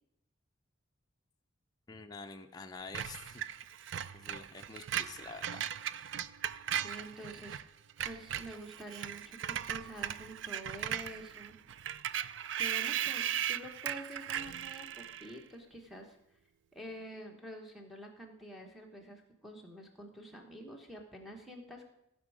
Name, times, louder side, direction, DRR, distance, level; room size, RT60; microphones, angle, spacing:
voice 1, 1.9-3.5 4.1-5.7, left 4 dB, 20° left, 4 dB, 0.5 m, -47 dB
Screech, 2.9-7.6 7.9-15.4, right 10 dB, 65° right, 0.3 m, -38 dB
voice 2, 6.7-7.6 8.0-11.6 12.6-16.2 16.7-21.9, right 1 dB, ahead, -1 dB, 1.2 m, -47 dB
15.5 x 5.4 x 4.9 m, 0.82 s
head